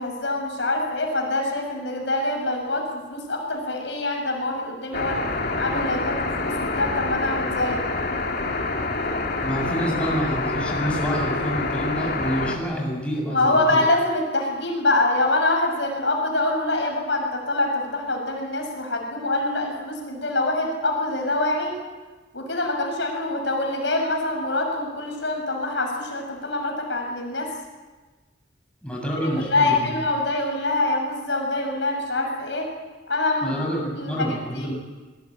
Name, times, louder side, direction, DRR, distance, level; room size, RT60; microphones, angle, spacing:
voice 1, 0.0-5.2 5.6-7.8 13.3-21.7 22.3-27.5 29.4-32.7 33.1-33.6 33.9-34.7, left 2 dB, 70° left, 2 dB, 6.4 m, -25 dB
sound 1, 4.9-12.6, left 3 dB, 55° left, 2.9 m, -27 dB
voice 2, 9.4-13.8 28.8-29.9 33.4-34.7, equal, 5° left, -1 dB, 7.2 m, -27 dB
24.0 x 22.0 x 8.8 m, 1.3 s
head